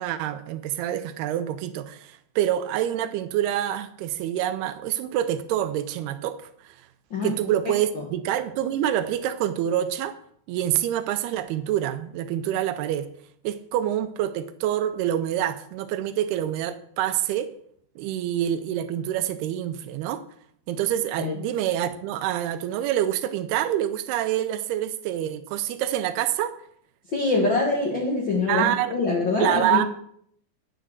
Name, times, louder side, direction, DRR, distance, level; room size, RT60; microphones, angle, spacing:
voice 1, 0.0-6.8 7.2-10.2 10.5-13.1 13.4-17.5 18.0-20.2 20.7-26.5 28.5-29.0 29.4-29.8, right 11 dB, 80° right, 2.6 m, -26 dB
voice 2, 27.1-29.8, left 3 dB, 60° left, 1.2 m, -24 dB
10.0 x 6.2 x 6.7 m
omnidirectional pair, 4.7 m